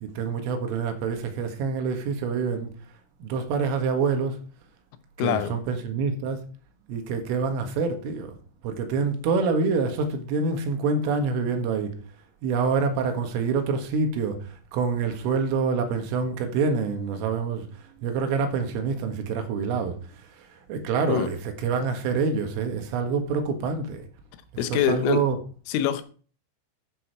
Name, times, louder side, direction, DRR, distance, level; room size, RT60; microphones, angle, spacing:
voice 1, 0.0-2.7 3.2-4.4 5.2-6.4 6.9-8.3 8.6-11.9 12.4-17.7 18.0-20.0 20.4-24.1 24.5-25.4, right 5 dB, 90° right, 4.3 m, -26 dB
voice 2, 5.2-5.6 21.1-21.3 24.6-25.2 25.7-26.0, left 9 dB, 80° left, 3.4 m, -24 dB
12.5 x 7.3 x 4.7 m
omnidirectional pair, 5.6 m